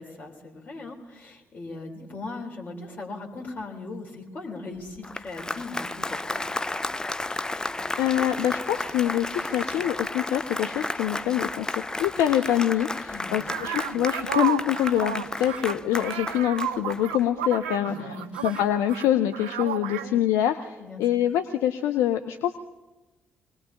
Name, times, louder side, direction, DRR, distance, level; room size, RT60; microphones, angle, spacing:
voice 1, 0.0-6.5 13.1-13.6 17.8-18.3 19.9-20.2 20.8-21.0, left 3 dB, 40° left, -2 dB, 3.9 m, -39 dB
Applause, 4.9-17.4, left 2 dB, 15° left, 0.4 m, -33 dB
voice 2, 8.0-17.9 18.4-22.6, left 11 dB, 65° left, 7 dB, 0.6 m, -25 dB
Drill, 9.4-9.8 12.3-12.8 15.4-15.7 18.3-18.7, left 2 dB, 85° left, 3.1 m, -49 dB
sound 1, 13.5-19.1 19.3-20.1, right 10 dB, 75° right, 0.5 m, -32 dB
24.5 x 19.5 x 2.9 m, 1.1 s
figure-of-eight pair, 40°, 5 cm